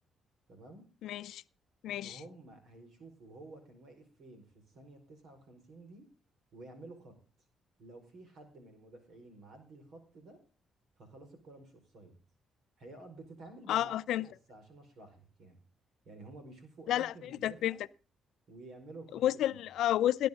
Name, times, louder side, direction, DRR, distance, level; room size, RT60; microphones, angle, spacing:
voice 1, 0.5-0.8 2.0-6.0 6.5-7.1 7.8-10.4 11.0-12.2 12.8-15.6 16.0-17.8 18.5-19.6, right 2 dB, 70° right, 4.9 m, -52 dB
voice 2, 1.0-1.4 1.8-2.2 13.7-14.3 16.9-17.1 17.4-17.8 19.2-20.3, left 12 dB, 80° left, 0.5 m, -30 dB
17.5 x 11.0 x 3.7 m
cardioid pair, 90°, 0 cm